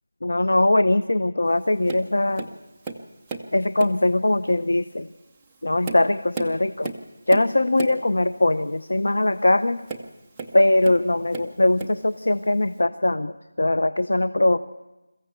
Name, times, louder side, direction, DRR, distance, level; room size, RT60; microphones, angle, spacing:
voice 1, 0.2-2.5 3.5-5.1 5.6-6.9 7.3-9.8 10.5-14.6, left 2 dB, 70° left, 13 dB, 0.7 m, -21 dB
Tap, 1.9-2.1 2.4-3.5 3.8-4.1 4.8-4.9 5.5-8.1 9.8-11.0 11.3-12.0 12.8-12.9, right 3 dB, 5° right, 0.6 m, -34 dB
22.5 x 15.0 x 8.2 m, 1.1 s
figure-of-eight pair, 180°, 0 cm